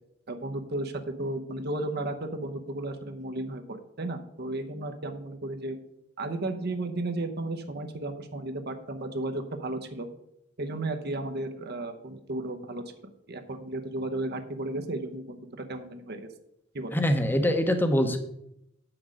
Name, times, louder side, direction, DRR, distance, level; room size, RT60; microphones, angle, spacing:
voice 1, 0.3-0.9 1.2-5.8 6.2-10.1 10.6-12.8 13.3-16.3 16.7-17.0, right 2 dB, 55° right, 7 dB, 0.8 m, -34 dB
voice 2, 16.9-18.2, equal, 10° left, 7 dB, 0.9 m, -24 dB
7.6 x 6.1 x 6.3 m, 0.78 s
head